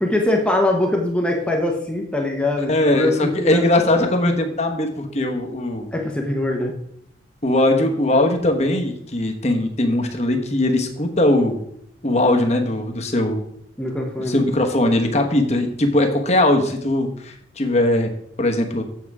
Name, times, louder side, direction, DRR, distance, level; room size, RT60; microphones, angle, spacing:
voice 1, 0.0-3.6 5.9-6.7 13.8-14.4, left 1 dB, 5° left, 1 dB, 1.1 m, -22 dB
voice 2, 2.7-5.9 7.4-11.6 12.0-13.4 14.3-18.1 18.4-18.8, left 1 dB, 35° left, 4 dB, 1.2 m, -20 dB
7.6 x 7.5 x 4.8 m, 0.71 s
head